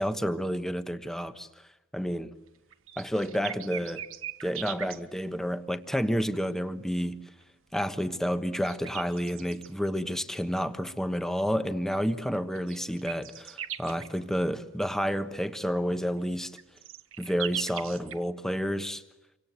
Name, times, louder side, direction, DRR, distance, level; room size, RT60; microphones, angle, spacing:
voice 1, 0.0-1.5 1.9-2.3 3.0-4.0 4.4-7.2 7.7-16.5 17.2-19.0, equal, ahead, 1.2 m, -30 dB
sound 1, 2.5-5.0 7.4-7.5 8.4-9.7 11.4-11.5 12.3-14.2 16.4-18.2, right 11 dB, 65° right, 1.3 m, -39 dB
29.0 x 25.5 x 8.1 m
head